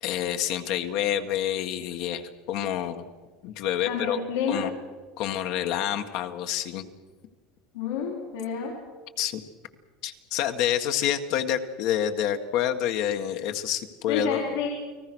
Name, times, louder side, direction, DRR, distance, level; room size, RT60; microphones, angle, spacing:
voice 1, 0.0-3.1 3.4-4.2 4.5-4.7 5.2-6.8 9.2-9.4 10.0-14.6, left 10 dB, 65° left, 6 dB, 1.7 m, -28 dB
voice 2, 3.8-4.7 7.7-8.7 14.1-14.7, left 6 dB, 90° left, -4 dB, 4.9 m, -29 dB
29.5 x 19.0 x 6.3 m, 1.4 s
supercardioid pair, 125°, 0 cm